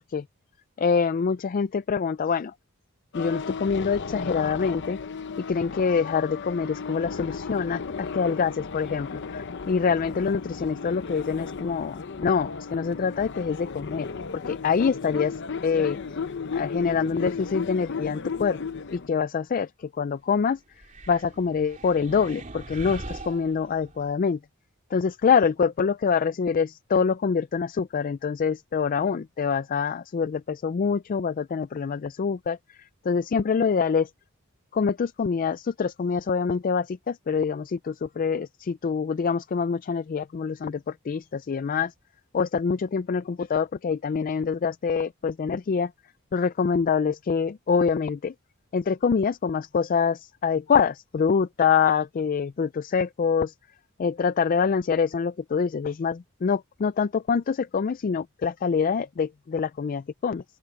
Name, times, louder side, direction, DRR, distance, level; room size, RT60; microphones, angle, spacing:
voice 1, 0.8-2.5 3.1-5.0 5.4-14.1 14.5-16.0 16.5-18.6 18.9-20.6 21.1-24.4 24.9-32.6 33.0-34.1 34.7-41.9 42.3-45.9 46.3-48.3 48.7-53.5 54.0-60.4, left 6 dB, 40° left, 0.4 m, -25 dB
sound 1, 3.1-19.1, left 5 dB, 55° left, 0.7 m, -34 dB
sound 2, 20.8-24.1, right 2 dB, 35° right, 2.8 m, -41 dB
open air
head